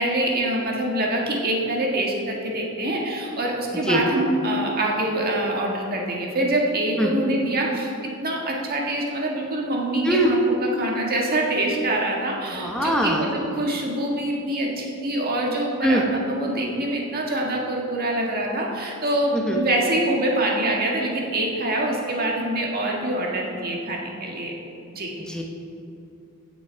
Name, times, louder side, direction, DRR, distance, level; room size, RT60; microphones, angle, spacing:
voice 1, 0.0-7.9 8.2-24.5 24.9-25.1, right 1 dB, 45° right, -1 dB, 1.7 m, -25 dB
voice 2, 12.5-13.2 15.8-16.0 19.3-19.6 25.3-25.4, right 1 dB, 5° left, -1 dB, 1.0 m, -22 dB
16.0 x 6.1 x 4.6 m, 2.7 s
head